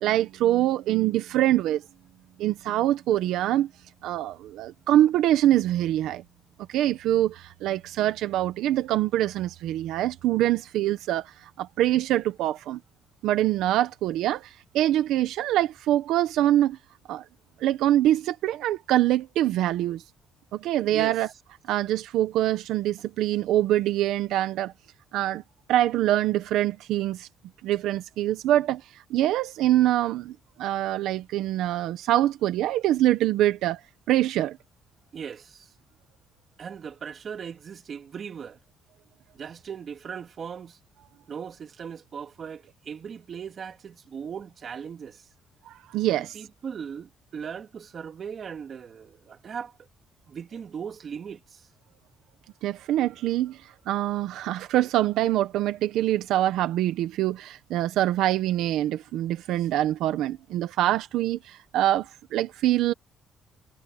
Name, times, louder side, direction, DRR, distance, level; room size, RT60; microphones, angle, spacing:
voice 1, 0.0-1.8 2.4-3.7 4.0-6.2 6.7-12.8 13.2-16.8 17.1-17.2 17.6-20.0 20.5-21.3 21.7-24.7 25.1-25.4 25.7-27.3 27.6-28.8 29.1-33.8 34.1-34.6 45.7-46.4 52.6-53.6 53.9-62.9, right 13 dB, 90° right, 1.1 m, -24 dB
voice 2, 20.9-21.2 35.1-35.7 36.6-38.6 39.3-40.8 41.3-45.2 46.1-49.7 50.3-51.7, right 7 dB, 45° right, 3.3 m, -38 dB
cardioid pair, 125°, 0 cm